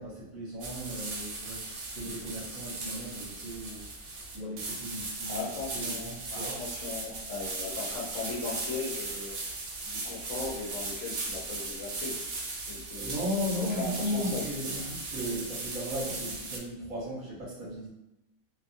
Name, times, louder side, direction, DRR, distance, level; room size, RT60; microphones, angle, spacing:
voice 1, 0.0-3.9 4.3-6.6 12.9-17.9, equal, 60° right, -6 dB, 1.3 m, -36 dB
sound 1, 0.6-16.6, right 2 dB, 85° right, 0.5 m, -37 dB
voice 2, 5.2-9.3 9.8-12.2 12.7-14.8, left 4 dB, 65° left, -4 dB, 0.9 m, -38 dB
2.7 x 2.4 x 2.5 m, 0.89 s
omnidirectional pair, 1.6 m